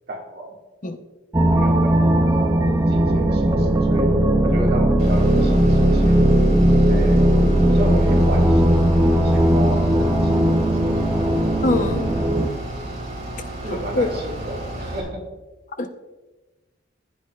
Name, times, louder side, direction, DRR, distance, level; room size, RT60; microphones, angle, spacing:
voice 1, 0.1-0.6 1.5-4.2 4.4-6.2 6.9-7.4 7.7-8.7 9.2-11.0 13.6-15.3, right 1 dB, 55° right, -1 dB, 1.9 m, -32 dB
sound 1, 1.3-12.5, right 1 dB, 20° right, 0.7 m, -17 dB
Bus / Idling, 5.0-15.0, right 1 dB, 40° right, 2.7 m, -33 dB
voice 2, 11.6-12.1 14.0-14.1 15.8-15.9, left 2 dB, 45° left, 7 dB, 0.8 m, -21 dB
15.0 x 9.0 x 2.4 m, 1.1 s
head